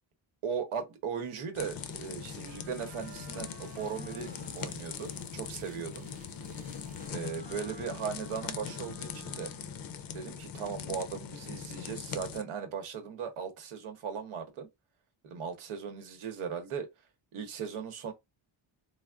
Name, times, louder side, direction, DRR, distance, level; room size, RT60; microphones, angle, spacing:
voice 1, 0.4-6.1 7.1-9.5 10.1-14.7 15.2-16.9 17.3-18.1, right 6 dB, 85° right, 1.0 m, -38 dB
sound 1, 1.5-12.4, left 7 dB, 50° left, 0.5 m, -41 dB
sound 2, 1.7-7.1, right 3 dB, 20° right, 0.4 m, -57 dB
Wind instrument woodwind instrument, 2.4-9.9, right 5 dB, 60° right, 0.9 m, -53 dB
3.4 x 2.0 x 2.3 m
cardioid pair, 95°, 49 cm